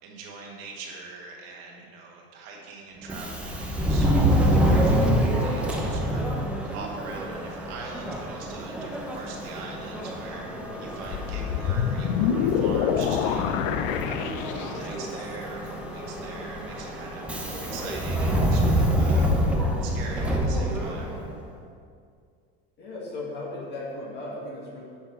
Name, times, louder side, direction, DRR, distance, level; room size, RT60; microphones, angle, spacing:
voice 1, 0.0-6.3 6.6-10.5 10.8-17.3 17.6-19.3 19.8-21.2, right 4 dB, 65° right, -1 dB, 1.7 m, -43 dB
Subway metro underground, 3.0-21.4, equal, 5° right, 0.7 m, -27 dB
sound 1, 11.1-15.1, left 8 dB, 55° left, 0.5 m, -26 dB
voice 2, 22.8-24.8, left 2 dB, 35° left, -4 dB, 2.0 m, -36 dB
9.7 x 6.3 x 4.0 m, 2.2 s
supercardioid pair, 155°, 30 cm